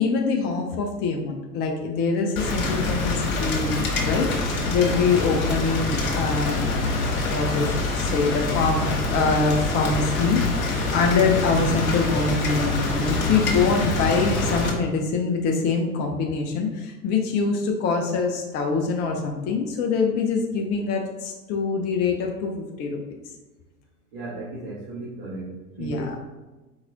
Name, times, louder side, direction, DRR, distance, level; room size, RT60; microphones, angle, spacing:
voice 1, 0.0-7.0 7.3-23.0 25.8-26.1, left 4 dB, 20° left, 1 dB, 0.5 m, -24 dB
Rain, 2.4-14.7, left 2 dB, 60° left, 1.4 m, -25 dB
voice 2, 24.1-26.2, right 2 dB, 45° right, -7 dB, 1.3 m, -35 dB
4.4 x 3.1 x 3.7 m, 1.1 s
figure-of-eight pair, 85°, 47 cm